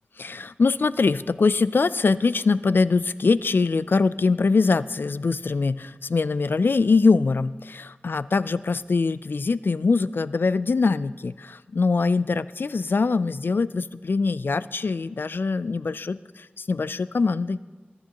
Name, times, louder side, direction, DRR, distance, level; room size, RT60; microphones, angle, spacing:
voice 1, 0.2-17.6, left 4 dB, 70° left, 16 dB, 0.3 m, -23 dB
21.0 x 9.7 x 2.9 m, 1.3 s
wide cardioid pair, 55°, 4 cm